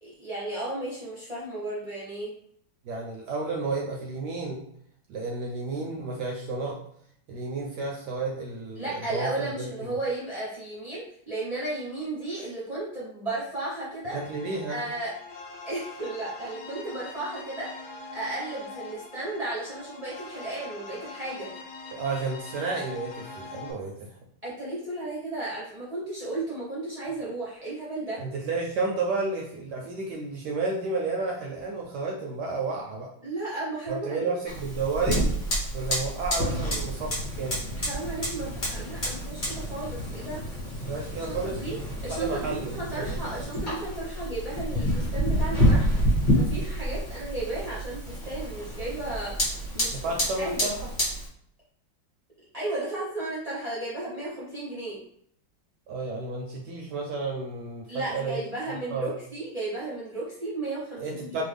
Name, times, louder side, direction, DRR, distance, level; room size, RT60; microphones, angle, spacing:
voice 1, 0.0-2.3 8.7-14.2 14.7-15.1 15.6-17.7 18.1-21.5 24.4-28.2 33.2-34.3 37.7-40.4 41.1-41.8 42.0-45.9 46.3-49.3 49.7-50.7 52.5-55.0 57.9-61.4, right 2 dB, 50° right, -9 dB, 0.4 m, -34 dB
voice 2, 2.8-4.6 5.1-6.8 7.3-9.3 9.6-9.7 14.1-14.8 21.9-24.1 28.2-33.1 33.9-35.2 35.7-37.6 40.8-41.8 42.1-43.2 49.9-50.8 55.9-58.4 58.9-59.1 61.0-61.4, right 3 dB, 75° right, -1 dB, 1.0 m, -31 dB
sound 1, 14.1-23.7, left 3 dB, 80° left, 0.9 m, -43 dB
Fire, 34.5-51.3, equal, 35° left, 0.9 m, -28 dB
3.1 x 2.2 x 3.3 m, 0.65 s
omnidirectional pair, 2.2 m